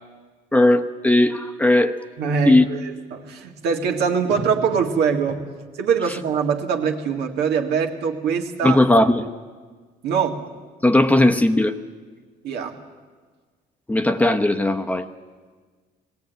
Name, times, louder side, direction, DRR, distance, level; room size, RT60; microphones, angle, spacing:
voice 1, 0.5-2.0 2.4-2.7 8.6-9.3 10.8-11.8 13.9-15.1, left 1 dB, 10° left, 6 dB, 0.9 m, -17 dB
voice 2, 2.2-5.5 5.8-8.8 10.0-10.5 12.4-12.8, right 6 dB, 75° right, 3 dB, 2.0 m, -23 dB
20.0 x 17.0 x 9.2 m, 1.5 s
cardioid pair, 110°, 17 cm